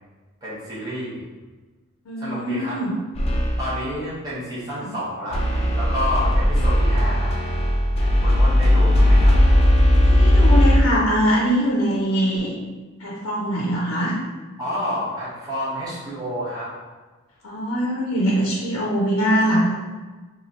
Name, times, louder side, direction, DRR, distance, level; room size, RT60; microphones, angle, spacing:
voice 1, 0.4-1.2 2.2-2.8 3.6-5.4 5.7-7.3 8.2-9.3 14.6-16.7, left 1 dB, 15° right, -10 dB, 1.1 m, -29 dB
voice 2, 2.1-2.9 4.8-4.9 8.6-8.8 10.0-12.5 13.0-14.2 17.4-19.7, equal, 70° left, -4 dB, 0.6 m, -22 dB
sound 1, 3.1-3.9 5.3-10.8, left 1 dB, 30° left, 0.5 m, -17 dB
3.1 x 2.3 x 4.0 m, 1.3 s
head